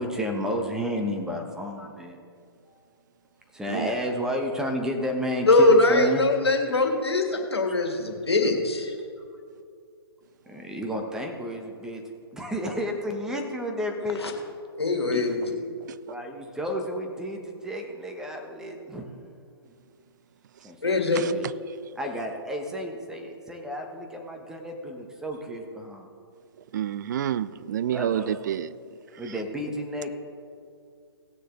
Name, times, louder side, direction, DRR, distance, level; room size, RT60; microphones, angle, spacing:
voice 1, 0.0-2.2 3.5-6.2 10.5-12.0 12.3-14.2 15.1-15.3 16.1-19.1 20.6-21.4 22.0-26.1 27.9-28.4 29.2-30.1, equal, 5° right, 1.1 m, -32 dB
voice 2, 5.5-8.9 14.2-14.3 14.8-15.3 20.8-21.2, left 2 dB, 80° left, 1.9 m, -22 dB
voice 3, 26.7-28.8 29.3-29.4, right 10 dB, 45° right, 0.4 m, -29 dB
18.0 x 6.5 x 3.9 m
figure-of-eight pair, 125°, 13 cm